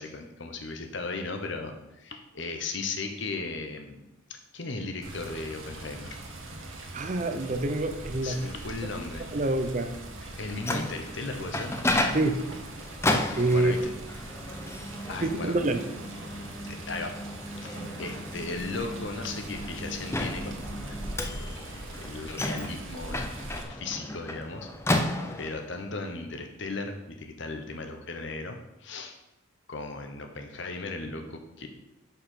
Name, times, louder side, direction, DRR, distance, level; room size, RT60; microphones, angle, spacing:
voice 1, 0.0-4.0 4.3-6.2 8.2-9.4 10.3-11.7 13.5-13.9 15.1-15.6 16.7-17.2 17.6-25.1 25.4-29.2 29.7-31.7, left 3 dB, 60° left, 4 dB, 1.0 m, -37 dB
Water, 5.0-23.6, right 2 dB, 65° right, 1.3 m, -42 dB
voice 2, 6.9-8.4 9.3-9.9 12.1-12.5 13.4-13.7 15.2-15.8, right 2 dB, 35° right, 7 dB, 0.6 m, -26 dB
Microwave oven, 10.3-25.7, left 1 dB, 10° left, 0.5 m, -33 dB
6.6 x 5.4 x 5.7 m, 0.93 s
head